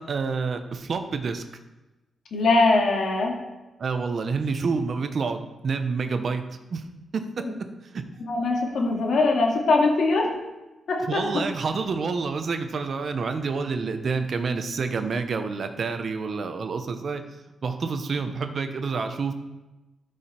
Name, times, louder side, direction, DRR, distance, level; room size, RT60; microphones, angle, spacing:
voice 1, 0.0-1.4 3.8-6.4 6.7-6.8 7.1-7.5 7.8-8.0 11.1-17.2 17.6-19.3, right 4 dB, 45° right, 8 dB, 0.8 m, -28 dB
voice 2, 2.3-3.3 7.4-7.5 8.3-10.3 10.9-11.2, left 3 dB, 65° left, -1 dB, 2.0 m, -21 dB
12.5 x 5.0 x 4.3 m, 1.0 s
wide cardioid pair, 150°, 0 cm